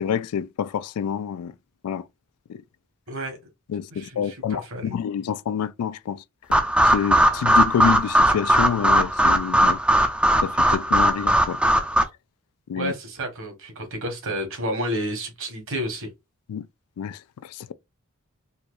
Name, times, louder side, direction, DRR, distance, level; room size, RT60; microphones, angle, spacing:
voice 1, 0.0-1.5 1.8-2.0 2.5-2.6 3.7-6.2 6.5-9.8 10.4-11.6 12.7-12.9 16.5-16.7 17.0-17.7, left 8 dB, 80° left, 0.3 m, -28 dB
voice 2, 3.1-3.4 3.9-5.0 12.7-16.1, equal, 60° right, 1.4 m, -30 dB
sound 1, 6.5-12.0, right 1 dB, 5° right, 0.4 m, -19 dB
4.2 x 2.4 x 2.4 m
head